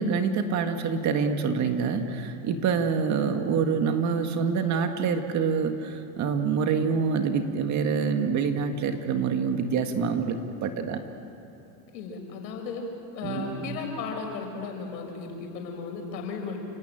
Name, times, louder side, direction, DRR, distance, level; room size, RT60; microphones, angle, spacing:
voice 1, 0.0-11.0 13.2-13.8, right 5 dB, 35° right, 6 dB, 1.9 m, -26 dB
voice 2, 11.9-12.9 13.1-16.6, left 5 dB, 80° left, 3 dB, 6.2 m, -35 dB
29.5 x 17.0 x 9.1 m, 2.9 s
supercardioid pair, 140°, 50 cm